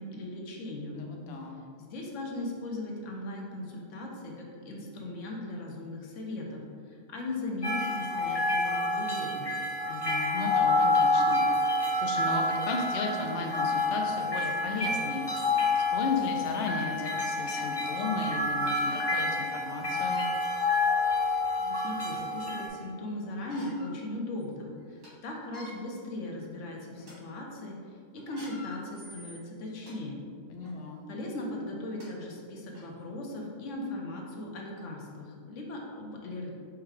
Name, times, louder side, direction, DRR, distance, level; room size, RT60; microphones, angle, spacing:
voice 1, 0.0-1.0 1.8-9.5 21.6-30.2 31.1-36.5, left 1 dB, 80° left, -1 dB, 1.1 m, -38 dB
voice 2, 0.9-1.6 9.9-11.5 11.9-15.3 15.7-20.3 30.5-31.0, left 3 dB, 65° left, 1 dB, 0.7 m, -35 dB
sound 1, 7.6-22.7, left 2 dB, 35° left, 0.4 m, -28 dB
sound 2, 15.9-16.3 16.9-17.0 17.3-17.5 18.9-19.0 19.9-20.3 21.1-21.2 21.7-22.4 23.3-23.9 24.4-24.5 24.8-25.1 25.4-25.7 26.4-26.6 27.0-27.1 28.2-29.9 30.6-30.8 31.6-31.7 32.0-32.1 32.7-32.8, left 1 dB, 80° right, 1.7 m, -49 dB
4.8 x 2.2 x 4.7 m, 2.1 s
omnidirectional pair, 1.3 m